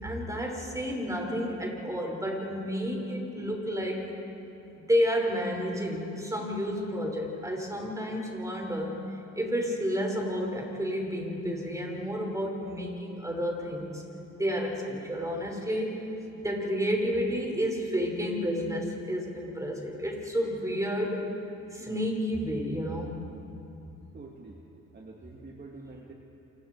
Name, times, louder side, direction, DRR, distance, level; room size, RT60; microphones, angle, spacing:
voice 1, 0.0-4.1 4.8-8.9 9.3-14.0 14.3-15.9 16.4-21.2 21.7-23.2, equal, 10° right, 0 dB, 5.6 m, -30 dB
voice 2, 24.1-24.6 24.9-26.1, right 3 dB, 35° right, 0 dB, 2.3 m, -46 dB
28.0 x 25.5 x 4.7 m, 2.9 s
cardioid pair, 90°, 30 cm